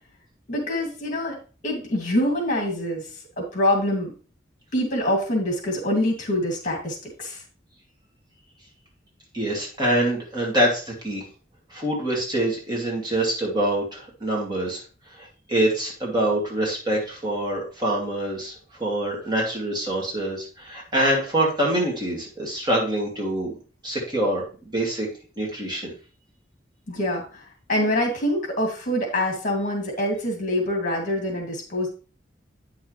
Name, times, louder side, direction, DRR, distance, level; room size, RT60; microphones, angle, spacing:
voice 1, 0.5-1.4 1.6-3.0 3.4-4.1 4.7-7.4 26.9-27.4 27.7-31.9, left 1 dB, 45° left, 1 dB, 2.5 m, -25 dB
voice 2, 9.3-11.2 11.7-14.8 15.2-18.5 18.8-23.5 23.8-25.1 25.4-25.9, right 1 dB, 25° right, -3 dB, 2.4 m, -25 dB
9.3 x 6.0 x 3.2 m, 0.36 s
head